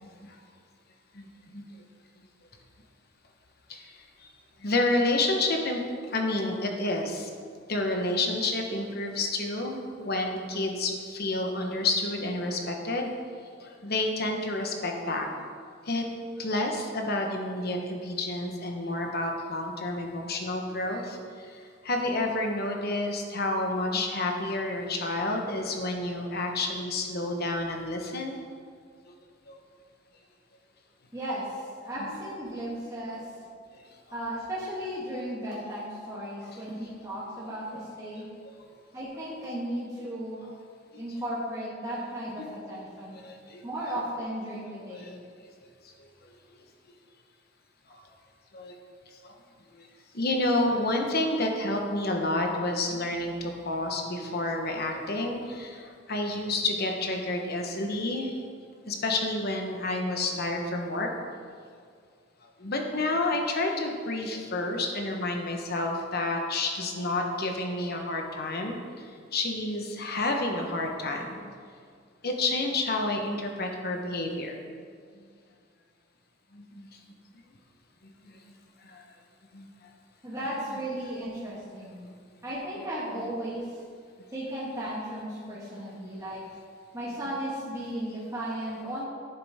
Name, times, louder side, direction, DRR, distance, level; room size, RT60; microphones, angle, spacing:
voice 1, 0.0-0.4 1.1-1.3 1.5-1.8 3.7-4.3 4.6-7.3 7.7-13.1 13.6-15.3 15.8-16.1 16.4-28.4 29.1-29.2 29.5-29.6 32.0-32.2 33.7-33.8 36.4-36.6 42.4-42.5 43.1-43.6 44.9-45.1 46.2-46.3 47.9-48.0 48.5-48.8 49.2-49.3 49.7-49.8 50.1-58.4 58.9-61.1 62.4-71.5 72.2-74.6 75.1-75.3 76.5-77.0 78.0-78.4 78.8-79.0 79.5-79.7, left 2 dB, 55° left, 2 dB, 1.2 m, -30 dB
voice 2, 31.1-33.3 34.1-38.3 38.9-40.4 41.0-43.2 43.6-45.2 50.9-51.1 80.2-82.0 82.4-83.7 84.3-86.4 86.9-89.1, right 1 dB, 15° right, -8 dB, 1.7 m, -35 dB
10.5 x 8.6 x 3.6 m, 2.1 s
head